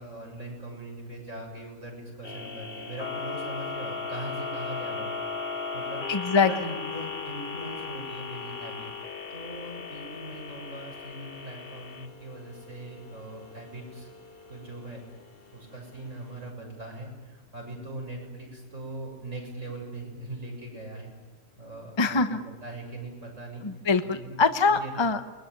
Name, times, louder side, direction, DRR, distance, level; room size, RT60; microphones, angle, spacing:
voice 1, 0.0-5.4 5.7-6.0 6.4-8.9 9.3-14.1 14.5-15.0 15.5-21.1 21.6-22.2 22.6-23.6 24.0-24.4 24.7-24.9, right 1 dB, 65° right, 1 dB, 7.5 m, -40 dB
sound 1, 2.2-16.5, left 5 dB, 45° left, 1.7 m, -38 dB
voice 2, 6.1-6.5 22.0-22.4 23.6-25.2, left 4 dB, 25° left, 8 dB, 1.0 m, -23 dB
28.5 x 22.0 x 9.4 m, 1.2 s
omnidirectional pair, 1.4 m